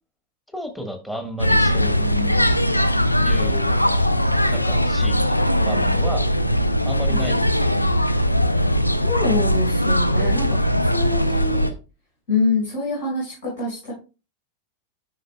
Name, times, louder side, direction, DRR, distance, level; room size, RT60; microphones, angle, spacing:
voice 1, 0.5-2.4 3.2-3.8 4.5-6.3 6.8-7.4, equal, 5° left, 5 dB, 1.3 m, -32 dB
sound 1, 1.4-11.7, equal, 85° left, 0.4 m, -20 dB
voice 2, 9.0-11.7 12.3-13.9, left 3 dB, 60° left, -7 dB, 4.2 m, -25 dB
9.8 x 5.6 x 2.2 m, 0.31 s
figure-of-eight pair, 90°, 0 cm